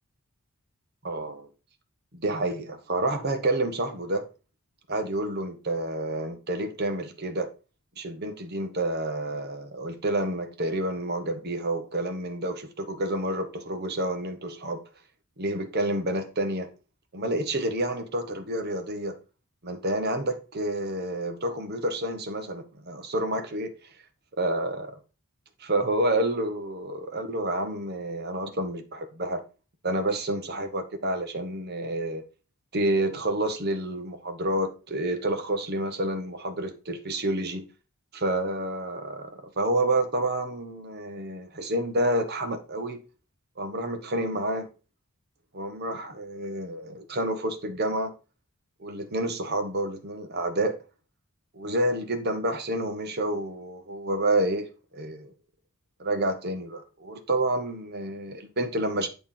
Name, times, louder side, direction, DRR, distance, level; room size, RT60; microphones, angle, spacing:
voice 1, 1.0-1.5 2.1-4.2 4.9-7.5 8.0-14.8 15.4-16.7 17.1-19.2 19.6-23.7 24.4-24.9 25.6-29.4 29.8-32.2 32.7-37.7 38.1-43.0 43.6-44.7 45.5-48.1 48.8-50.7 51.5-55.3 56.0-59.1, right 1 dB, 45° right, 1.1 m, -29 dB
8.9 x 3.4 x 5.6 m
head